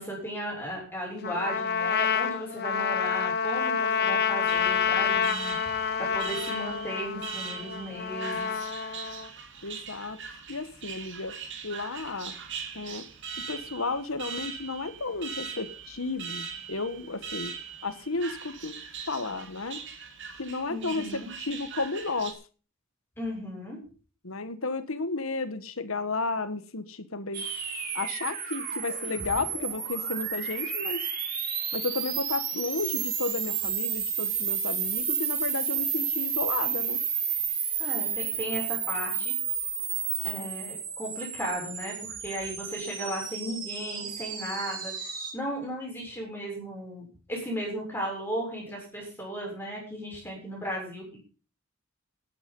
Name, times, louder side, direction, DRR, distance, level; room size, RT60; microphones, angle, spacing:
voice 1, 0.0-8.5 20.7-21.3 23.2-23.8 37.8-39.3 40.2-51.2, equal, 10° left, -2 dB, 7.0 m, -36 dB
Trumpet, 1.2-9.3, left 7 dB, 50° left, 1.2 m, -28 dB
Alarm, 4.5-22.3, right 6 dB, 60° right, 2.7 m, -41 dB
voice 2, 9.6-10.2 10.5-11.3 11.6-12.4 12.7-13.0 13.5-17.5 17.8-18.8 19.1-19.8 20.4-22.3 24.2-27.5 27.9-31.1 31.7-37.0, left 3 dB, 75° left, 12 dB, 1.5 m, -33 dB
sound 1, 27.3-45.3, right 7 dB, 45° right, 4.9 m, -31 dB
16.0 x 9.7 x 5.5 m, 0.37 s
head